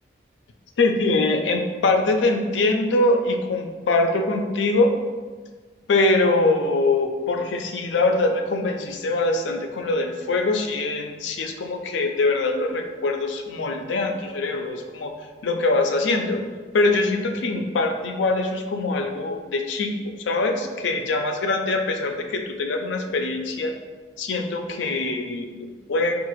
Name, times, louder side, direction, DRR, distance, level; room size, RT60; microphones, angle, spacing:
voice 1, 0.8-4.9 5.9-15.1 15.4-16.4 16.7-19.9 20.3-23.7 24.2-26.1, left 2 dB, 80° left, 4 dB, 0.4 m, -23 dB
4.7 x 2.4 x 3.0 m, 1.4 s
head